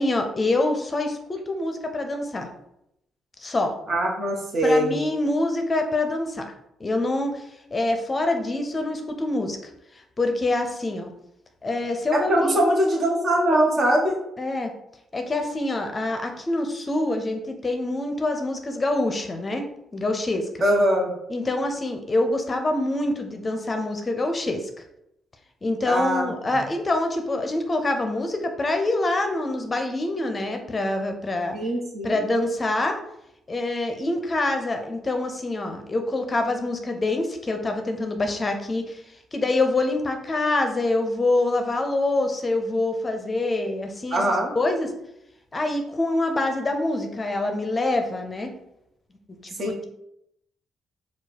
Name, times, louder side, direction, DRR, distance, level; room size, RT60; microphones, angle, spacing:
voice 1, 0.0-2.5 3.4-3.7 4.6-6.4 6.8-7.5 7.7-9.6 9.9-11.1 11.6-12.6 14.4-14.7 15.1-19.6 19.9-20.5 21.3-24.7 25.6-31.6 32.0-33.0 33.5-39.0 39.3-44.2 44.6-44.9 45.5-48.5 49.4-49.8, left 2 dB, 30° left, 5 dB, 0.6 m, -25 dB
voice 2, 3.9-5.0 12.1-14.2 20.6-21.1 25.8-26.6 31.5-32.2 44.1-44.5 49.6-49.8, right 1 dB, 50° right, 0 dB, 1.2 m, -22 dB
4.7 x 2.3 x 4.2 m, 0.81 s
cardioid pair, 90°, 0 cm